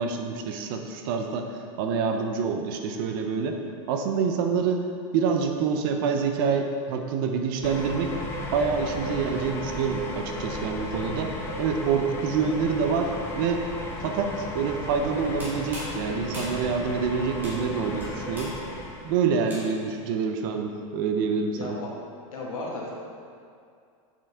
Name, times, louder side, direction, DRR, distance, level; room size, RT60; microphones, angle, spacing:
voice 1, 0.0-1.5 1.8-3.6 3.9-4.8 5.1-8.2 8.5-13.7 14.0-18.5 19.0-21.8, right 5 dB, 40° right, 4 dB, 0.6 m, -27 dB
sound 1, 7.6-19.2, left 2 dB, 15° left, 0.4 m, -35 dB
Coffee shots, 15.2-20.0, equal, 10° right, 1.6 m, -42 dB
voice 2, 22.3-22.9, left 2 dB, 85° left, -3 dB, 1.7 m, -34 dB
7.4 x 5.6 x 3.5 m, 2.3 s
supercardioid pair, 170°, 17 cm